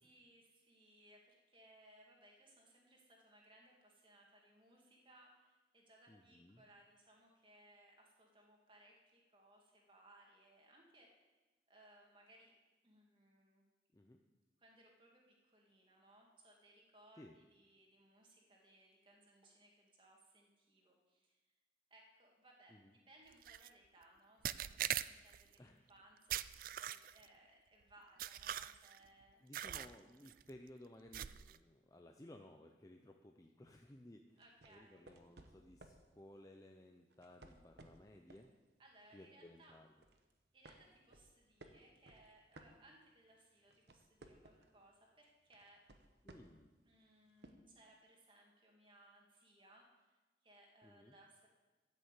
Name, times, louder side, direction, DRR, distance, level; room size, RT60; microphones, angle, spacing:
voice 1, 0.0-11.1 11.7-12.5 12.8-13.6 14.6-21.5 21.9-22.8 23.1-26.3 26.6-29.4 34.4-35.1 38.8-39.8 40.5-45.8 46.9-51.5, right 1 dB, 25° right, -1 dB, 2.2 m, -66 dB
voice 2, 6.1-6.6 13.9-14.2 17.2-17.4 22.7-22.9 25.6-25.8 29.4-34.4 34.7-38.5 39.1-39.9 46.2-46.7 50.8-51.1, left 1 dB, 20° left, 3 dB, 0.5 m, -58 dB
sound 1, 23.4-23.7 24.4-25.4 26.3-27.3 28.2-29.0 29.5-29.9 30.3-30.5 31.1-31.6, right 11 dB, 50° right, 0.3 m, -42 dB
sound 2, 34.4-36.1 37.1-38.5 38.9-39.2 39.6-40.2 40.6-43.2 43.6-44.8 45.5-46.7 47.4-47.5, right 2 dB, 65° right, 1.1 m, -60 dB
13.0 x 6.6 x 8.1 m, 1.2 s
head